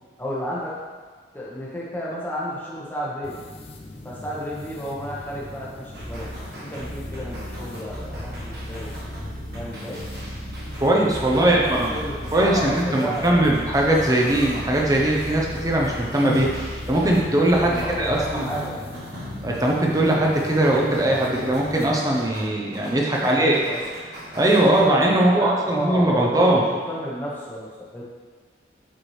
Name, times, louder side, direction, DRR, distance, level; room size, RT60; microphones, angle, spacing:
voice 1, 0.2-0.8 1.3-3.3 4.0-6.3 6.6-8.9 9.5-10.0 11.3-13.5 17.6-18.8 23.1-23.8 25.1-28.0, equal, 10° left, -6 dB, 1.2 m, -32 dB
sound 1, 3.2-22.0, left 1 dB, 30° left, 0.5 m, -41 dB
sound 2, 5.9-24.9, equal, 60° right, 1.4 m, -36 dB
voice 2, 10.8-11.9 12.3-16.5 16.9-18.5 19.4-23.6 24.3-26.6, right 1 dB, 20° right, -2 dB, 0.8 m, -20 dB
Human voice, 13.8-14.6 15.5-17.5, equal, 55° left, 1.1 m, -35 dB
7.7 x 4.7 x 3.2 m, 1.5 s
head